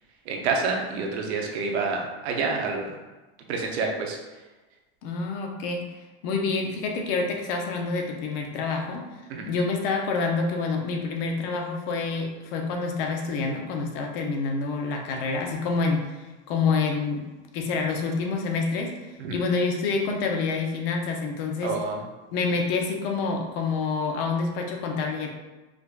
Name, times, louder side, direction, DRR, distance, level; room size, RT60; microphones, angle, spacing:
voice 1, 0.3-3.0 3.5-4.2 9.3-9.5 19.2-19.3 21.6-22.0, right 4 dB, 85° right, 2 dB, 0.8 m, -28 dB
voice 2, 5.0-5.9 6.2-17.3 17.5-21.8 22.3-25.3, left 4 dB, 60° left, 2 dB, 0.7 m, -27 dB
4.9 x 2.3 x 2.4 m, 1.2 s
supercardioid pair, 140°, 32 cm